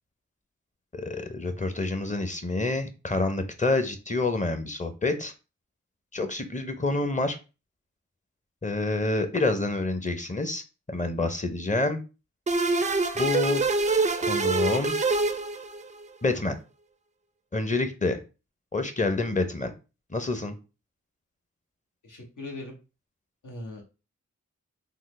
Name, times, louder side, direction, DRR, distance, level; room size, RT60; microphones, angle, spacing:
voice 1, 0.9-5.3 6.1-7.4 8.6-10.6 10.9-12.0 13.1-13.6 14.2-15.0 16.2-16.6 17.5-18.2 18.7-19.7 20.1-20.5, left 2 dB, 25° left, 8 dB, 0.7 m, -27 dB
sound 1, 12.5-16.1, right 3 dB, 25° right, 0.4 m, -25 dB
voice 2, 22.0-22.7 23.4-23.8, left 2 dB, 75° left, 1 dB, 1.1 m, -39 dB
3.8 x 2.1 x 3.1 m, 0.30 s
cardioid pair, 40°, 31 cm